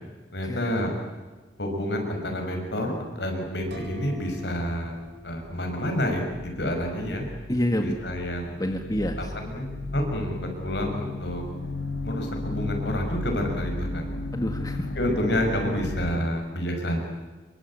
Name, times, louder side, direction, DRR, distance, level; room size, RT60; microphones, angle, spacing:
voice 1, 0.3-0.9 1.6-4.9 5.2-7.2 7.8-8.6 9.3-9.7 9.9-11.4 12.0-14.1 15.0-17.0, equal, 65° left, 3 dB, 6.3 m, -29 dB
sound 1, 3.7-6.5, equal, 70° right, 7.7 m, -44 dB
sound 2, 6.1-16.2, left 2 dB, 80° left, 1.7 m, -35 dB
voice 2, 7.5-8.0 8.6-9.3 14.3-14.9, equal, 20° left, 4 dB, 1.8 m, -28 dB
27.0 x 23.5 x 8.9 m, 1.3 s
head